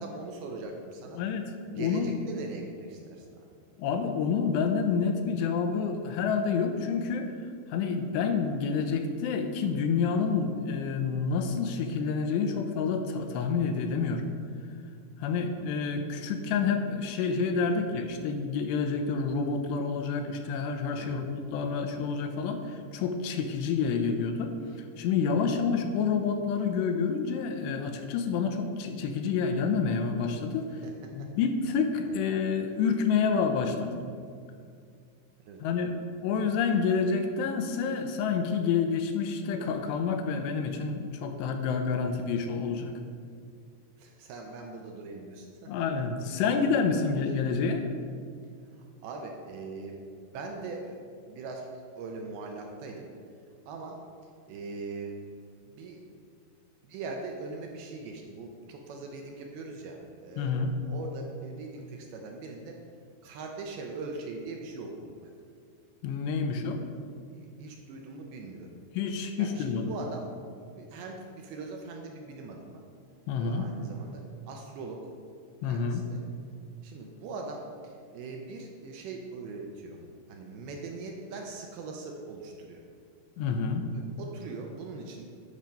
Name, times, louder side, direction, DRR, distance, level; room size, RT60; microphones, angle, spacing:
voice 1, 0.0-1.2 1.7-3.4 15.3-15.5 17.6-17.9 21.0-21.2 25.4-25.5 30.8-30.9 31.2-31.3 32.1-32.2 35.5-35.6 44.0-45.7 46.9-47.1 49.0-51.0 51.3-51.7 52.0-53.1 53.7-54.0 54.5-55.1 55.6-56.0 56.8-60.6 60.9-62.8 63.2-65.3 67.3-68.8 69.4-70.3 70.7-72.8 73.4-75.1 75.6-76.2 76.8-80.0 80.3-82.8 83.9-85.3, right 3 dB, 80° right, 1 dB, 2.4 m, -41 dB
voice 2, 1.7-2.2 3.8-7.3 7.7-14.3 15.2-24.5 25.0-30.7 31.1-34.1 35.6-35.9 36.2-42.9 45.7-47.8 60.4-60.7 66.0-66.8 68.9-69.9 73.3-73.7 75.6-76.0 83.4-83.9, left 5 dB, 90° left, 6 dB, 2.8 m, -28 dB
11.5 x 5.2 x 4.4 m, 2.2 s
omnidirectional pair, 4.9 m